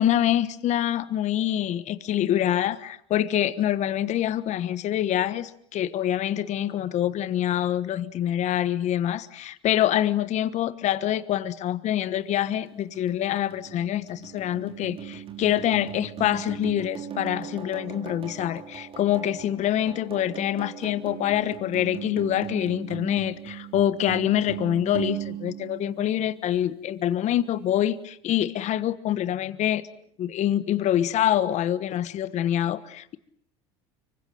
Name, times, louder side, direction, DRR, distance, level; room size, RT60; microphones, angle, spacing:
voice 1, 0.0-29.8 30.2-33.2, left 11 dB, 50° left, 14 dB, 1.3 m, -25 dB
sound 1, 12.4-26.6, right 10 dB, 35° right, 3.6 m, -39 dB
25.5 x 24.5 x 7.7 m, 0.68 s
supercardioid pair, 100°, 15 cm